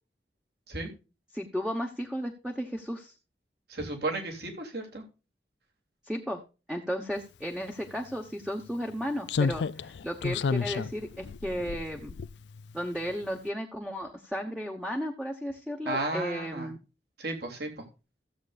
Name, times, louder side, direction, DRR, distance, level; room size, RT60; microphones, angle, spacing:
voice 1, 1.3-3.1 6.0-6.4 6.7-12.2 12.7-16.8, equal, 5° right, 2 dB, 1.1 m, -34 dB
voice 2, 3.7-5.0 15.8-16.7 17.2-17.8, right 2 dB, 65° right, 3 dB, 3.1 m, -34 dB
Slam, 7.9-8.0 9.3-12.8 13.1-13.3, left 5 dB, 80° left, 0.4 m, -31 dB
15.5 x 8.0 x 2.5 m, 0.30 s
head